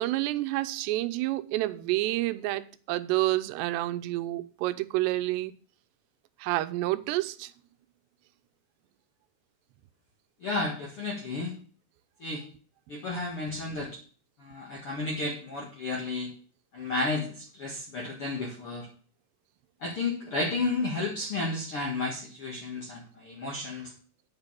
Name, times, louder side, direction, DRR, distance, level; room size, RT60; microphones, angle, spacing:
voice 1, 0.0-5.5 6.4-7.5, right 17 dB, 90° right, 2.8 m, -29 dB
voice 2, 10.4-11.5 12.2-12.4 12.9-14.0 14.4-16.3 16.7-18.9 19.8-23.9, left 3 dB, 55° left, 1.7 m, -32 dB
8.8 x 5.2 x 7.2 m
omnidirectional pair, 4.9 m